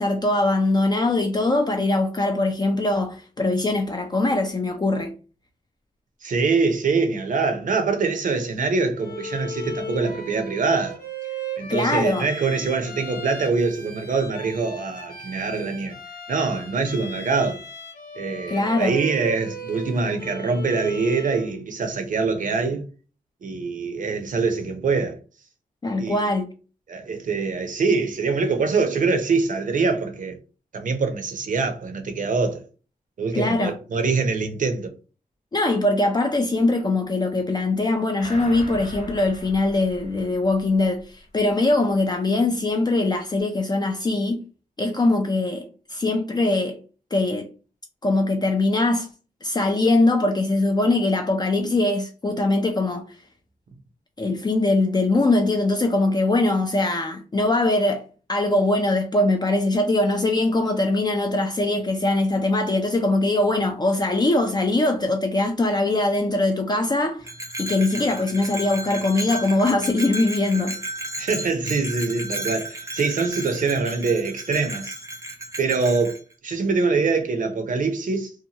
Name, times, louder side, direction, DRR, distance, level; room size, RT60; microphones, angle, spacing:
voice 1, 0.0-5.1 11.7-12.3 18.5-19.0 25.8-26.5 33.3-33.7 35.5-44.4 44.8-46.8 47.1-47.5 48.0-49.1 49.4-53.2 54.2-67.3 67.6-70.8, left 2 dB, 30° left, 0.4 m, -22 dB
voice 2, 6.2-11.0 11.6-16.0 16.3-17.6 18.2-22.8 23.4-25.2 26.0-26.4 26.9-30.4 30.7-32.6 33.2-34.9 71.2-75.0 75.6-76.2 76.4-78.3, right 4 dB, 60° right, 0.6 m, -24 dB
Bowed string instrument, 9.0-21.5, right 1 dB, 80° left, 0.6 m, -37 dB
sound 1, 38.2-41.1 41.5-41.6, left 1 dB, 45° left, 0.8 m, -40 dB
Bell, 67.2-76.2, right 1 dB, 20° right, 0.6 m, -34 dB
2.8 x 2.2 x 2.7 m
wide cardioid pair, 105°, 15 cm